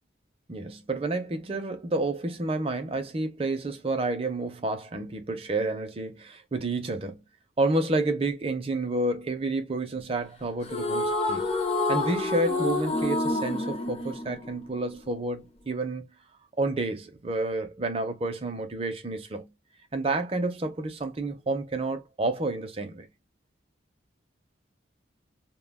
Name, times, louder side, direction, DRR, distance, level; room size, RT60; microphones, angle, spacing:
voice 1, 0.5-7.2 7.6-11.5 11.9-16.0 16.6-19.5 19.9-23.1, right 2 dB, 30° right, 0.5 m, -30 dB
sound 1, 10.6-15.1, left 2 dB, 30° left, 0.5 m, -28 dB
2.2 x 2.2 x 3.4 m
head